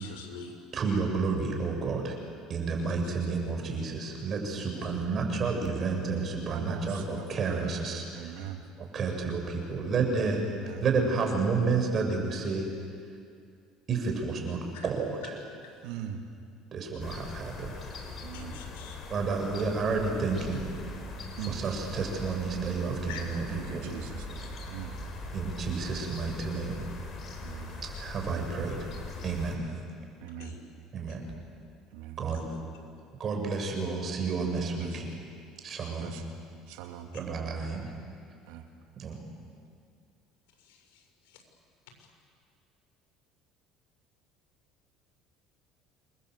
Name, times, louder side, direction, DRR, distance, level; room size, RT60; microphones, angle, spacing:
voice 1, 0.0-0.6 4.6-4.9 14.7-14.9 18.3-19.0 23.1-23.4 30.4-30.7 31.1-31.2 32.3-32.6 40.6-41.4, left 5 dB, 90° left, 1 dB, 5.8 m, -46 dB
voice 2, 0.7-2.2 2.5-8.4 8.8-10.4 10.8-12.7 13.9-15.2 16.7-17.8 19.1-20.7 21.4-23.4 23.7-23.9 25.3-26.8 28.0-28.9 29.2-29.6 30.9-31.2 32.2-32.4 33.2-35.1 35.6-36.1 37.1-37.9 39.0-39.2, right 4 dB, 40° right, 2 dB, 7.0 m, -30 dB
voice 3, 2.7-3.5 4.6-4.9 6.5-7.7 8.1-8.6 10.5-10.8 15.8-16.2 18.2-18.6 21.4-21.6 23.5-24.3 24.7-24.9 27.4-27.7 30.2-30.6 31.9-32.2 34.6-35.1 35.9-36.2 36.7-37.1 38.5-38.6, right 9 dB, 80° right, 3 dB, 2.4 m, -41 dB
sound 1, 17.0-29.6, left 2 dB, 40° left, 5.6 m, -41 dB
28.5 x 23.5 x 8.1 m, 2.3 s
supercardioid pair, 100°, 0 cm